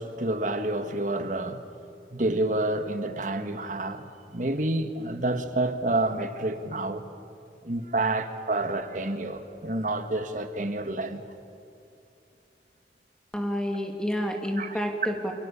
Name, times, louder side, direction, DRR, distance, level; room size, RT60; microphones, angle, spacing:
voice 1, 0.0-1.6 2.1-4.0 4.3-7.0 7.6-11.2 14.6-14.8, right 2 dB, 45° right, 1.7 m, -28 dB
voice 2, 13.3-15.3, equal, 5° left, 2.7 m, -29 dB
29.0 x 27.5 x 7.1 m
head